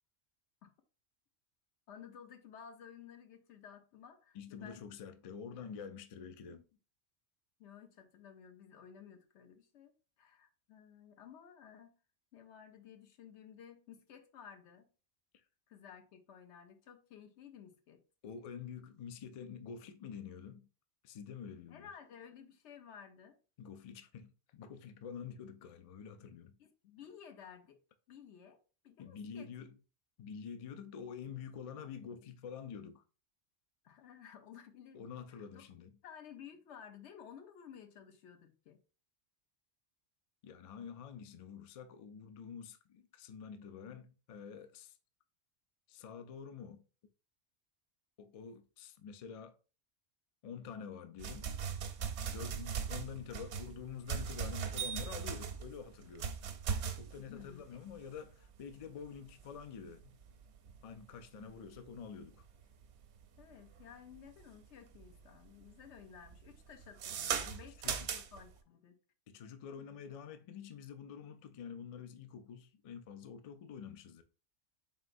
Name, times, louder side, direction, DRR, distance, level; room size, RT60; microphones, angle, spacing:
voice 1, 1.9-5.0 5.4-5.7 6.5-6.6 7.6-9.9 10.2-11.9 12.3-14.9 15.7-18.0 21.7-23.4 26.6-27.8 28.1-28.6 28.8-29.5 33.8-35.0 35.3-35.6 36.0-38.8 57.2-57.8 61.3-61.5 63.4-69.0, left 8 dB, 85° left, 1.0 m, -55 dB
voice 2, 4.3-6.7 18.2-20.7 21.0-21.9 23.6-26.5 29.0-29.8 30.2-33.0 34.9-35.9 40.4-45.0 45.9-46.8 48.2-49.5 50.4-51.5 52.3-56.3 56.9-60.2 60.8-62.4 67.8-68.1 69.3-74.2, left 7 dB, 70° left, 0.3 m, -47 dB
sound 1, 51.2-64.5 64.9-65.4 65.6-68.5, right 7 dB, 85° right, 0.9 m, -39 dB
3.9 x 3.8 x 2.5 m
omnidirectional pair, 1.1 m